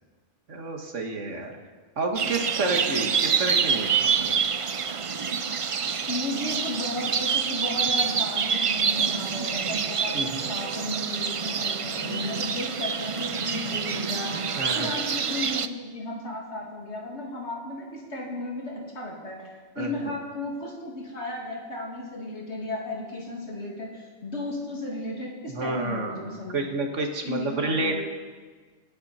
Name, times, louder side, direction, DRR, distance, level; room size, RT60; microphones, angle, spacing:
voice 1, 0.5-1.6 2.0-3.9 4.2-4.4 10.1-10.4 14.5-14.9 19.8-19.9 25.5-28.1, right 2 dB, 85° right, 3 dB, 2.1 m, -29 dB
sound 1, 2.1-15.7, right 6 dB, 45° right, 0.4 m, -27 dB
voice 2, 6.1-10.2 10.5-14.5 14.7-19.5 19.7-26.7 27.2-28.0, left 2 dB, 65° left, -2 dB, 2.8 m, -34 dB
26.5 x 10.0 x 4.3 m, 1.5 s
omnidirectional pair, 1.2 m